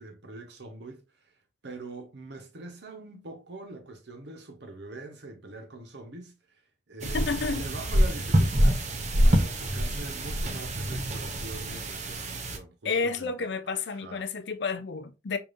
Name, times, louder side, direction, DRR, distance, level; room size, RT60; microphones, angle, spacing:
voice 1, 0.0-1.3 1.6-6.6 6.9-8.8 9.2-13.3 13.6-14.3, right 2 dB, 70° right, 1.0 m, -43 dB
sound 1, 7.0-12.6, equal, 40° right, 0.7 m, -26 dB
voice 2, 7.1-7.6 12.8-15.4, left 4 dB, 70° left, 0.5 m, -30 dB
4.9 x 2.7 x 2.5 m
head